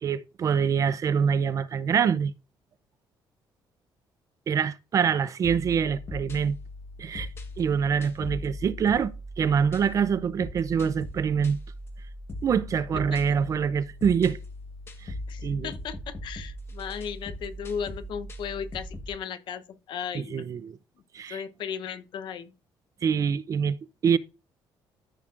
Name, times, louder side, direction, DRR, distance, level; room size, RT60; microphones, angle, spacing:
voice 1, 0.0-2.3 4.5-6.6 7.0-7.3 7.6-11.6 12.4-14.4 15.0-15.1 15.4-15.7 20.1-20.8 21.1-21.4 23.0-23.8 24.0-24.2, right 7 dB, 40° right, 0.4 m, -25 dB
sound 1, 5.4-19.2, left 1 dB, 30° left, 1.2 m, -39 dB
voice 2, 15.3-20.5 21.3-22.5, left 8 dB, 65° left, 0.8 m, -36 dB
13.5 x 5.9 x 2.5 m
cardioid pair, 145°, 9 cm